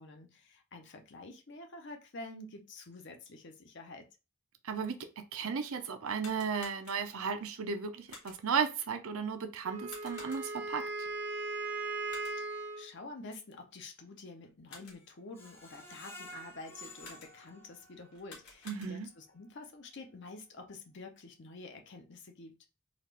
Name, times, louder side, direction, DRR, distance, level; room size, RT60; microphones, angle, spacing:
voice 1, 0.0-4.1 12.4-22.6, left 2 dB, 55° left, 0.7 m, -49 dB
voice 2, 4.6-5.0 5.3-11.1 18.7-19.1, right 6 dB, 75° right, 0.6 m, -35 dB
sound 1, 6.1-7.3 8.1-8.6 9.9-10.7 12.1-12.6 14.4-15.2 17.0-17.6 18.1-19.3, left 3 dB, 85° left, 1.6 m, -53 dB
Wind instrument woodwind instrument, 9.6-12.9, right 3 dB, 90° right, 1.1 m, -38 dB
Screech, 15.3-18.3 18.8-18.9 19.3-19.4, equal, 10° left, 0.6 m, -51 dB
4.0 x 2.5 x 3.3 m
head